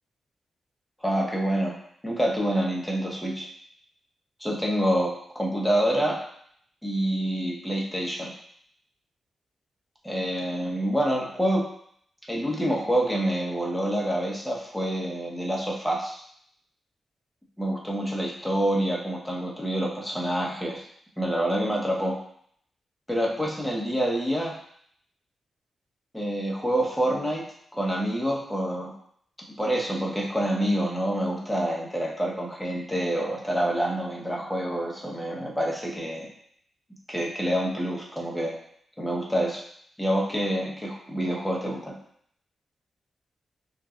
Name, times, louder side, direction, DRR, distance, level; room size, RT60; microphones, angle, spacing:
voice 1, 1.0-1.7 2.0-3.5 4.4-6.2 6.8-8.3 10.0-11.7 12.3-16.2 17.6-20.9 21.2-22.2 23.1-24.5 26.1-27.4 27.7-28.9 29.6-36.3 37.1-38.6 39.0-39.6 40.0-41.9, right 1 dB, 5° left, -2 dB, 1.1 m, -27 dB
5.4 x 2.6 x 2.5 m, 0.66 s
cardioid pair, 65°, 0 cm